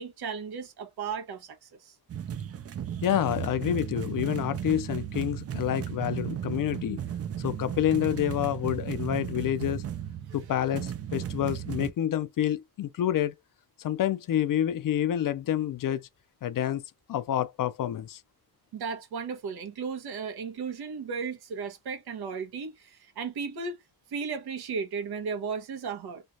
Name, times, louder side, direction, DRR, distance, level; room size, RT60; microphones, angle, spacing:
voice 1, 0.0-2.0 18.7-23.8 24.1-26.2, right 5 dB, 80° right, 1.1 m, -35 dB
sound 1, 2.1-11.9, right 9 dB, 40° right, 0.5 m, -35 dB
voice 2, 3.0-7.0 7.4-9.8 10.3-13.3 13.8-16.0 16.4-16.8 17.1-18.2, left 11 dB, 60° left, 0.6 m, -28 dB
3.2 x 2.4 x 2.6 m
cardioid pair, 110°, 37 cm